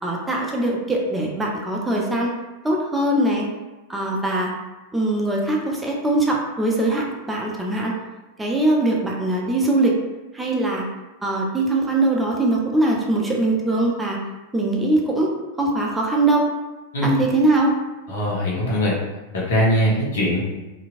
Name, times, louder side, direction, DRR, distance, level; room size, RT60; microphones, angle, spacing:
voice 1, 0.0-2.3 2.6-3.5 3.9-4.5 4.9-7.9 8.4-10.0 10.3-10.9 11.2-14.2 14.5-15.3 15.6-16.4 17.0-17.7, right 2 dB, 10° right, -1 dB, 0.4 m, -21 dB
voice 2, 18.1-18.9 19.3-20.4, equal, 60° left, -5 dB, 0.9 m, -21 dB
2.8 x 2.5 x 2.4 m, 1.1 s
figure-of-eight pair, 90°, 0 cm